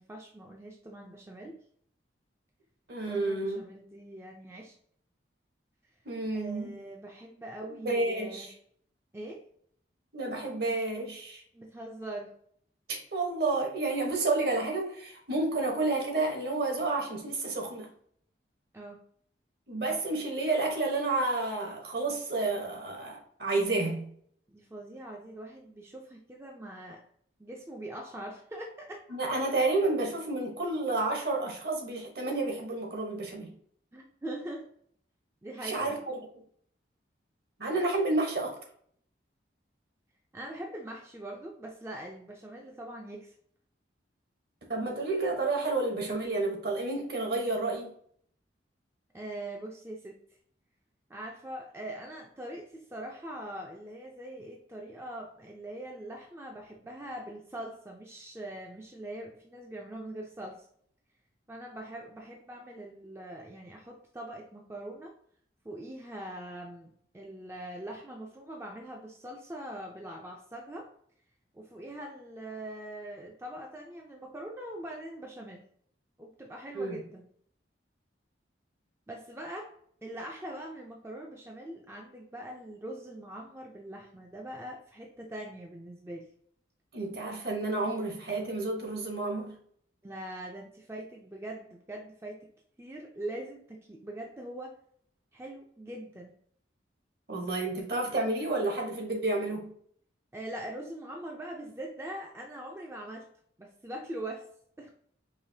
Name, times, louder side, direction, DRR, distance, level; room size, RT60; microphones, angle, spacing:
voice 1, 0.0-1.6 3.1-4.7 6.3-8.5 9.1-9.4 11.5-12.3 18.7-19.0 24.5-27.0 27.4-29.0 33.9-34.7 35.4-36.0 40.3-43.3 49.1-50.2 51.1-60.6 61.5-65.1 65.6-70.9 71.5-75.6 76.2-77.3 79.1-79.7 80.0-86.3 90.0-92.5 92.8-94.8 95.3-96.3 100.3-103.3 103.6-104.5 104.8-104.9, right 1 dB, 15° right, 0.4 m, -42 dB
voice 2, 2.9-3.6 6.0-6.8 7.8-8.5 10.1-11.4 12.9-17.9 19.7-24.1 29.1-33.5 35.6-36.2 37.6-38.6 44.7-47.9 76.7-77.0 86.9-89.6 97.3-99.7, right 2 dB, 55° right, 1.1 m, -30 dB
4.9 x 2.9 x 2.7 m
head